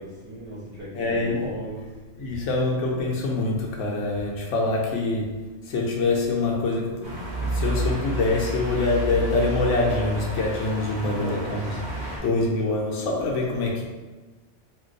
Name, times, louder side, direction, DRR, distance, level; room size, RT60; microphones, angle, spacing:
voice 1, 0.0-1.9 10.8-11.6 12.0-12.3, right 1 dB, 55° right, -8 dB, 0.3 m, -37 dB
voice 2, 0.9-1.5 2.2-13.8, left 3 dB, 85° left, -2 dB, 0.9 m, -25 dB
sound 1, 7.0-12.2, right 2 dB, 25° right, 1.0 m, -30 dB
2.5 x 2.3 x 3.7 m, 1.3 s
omnidirectional pair, 1.2 m